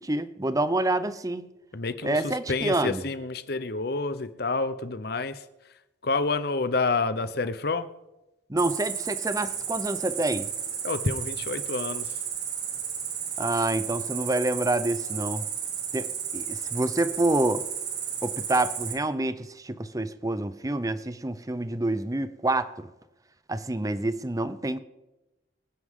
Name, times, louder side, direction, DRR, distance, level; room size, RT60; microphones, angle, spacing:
voice 1, 0.0-1.5 2.0-3.0 8.5-10.5 13.4-15.4 15.9-16.1 16.3-17.6 18.2-22.7 23.5-24.8, right 2 dB, 20° right, 13 dB, 0.7 m, -27 dB
voice 2, 1.7-5.4 6.0-7.9 10.8-12.2, left 3 dB, 55° left, 12 dB, 0.8 m, -28 dB
Cricket, 8.6-18.9, right 8 dB, 60° right, 2.2 m, -33 dB
24.5 x 9.8 x 3.7 m, 1.0 s
head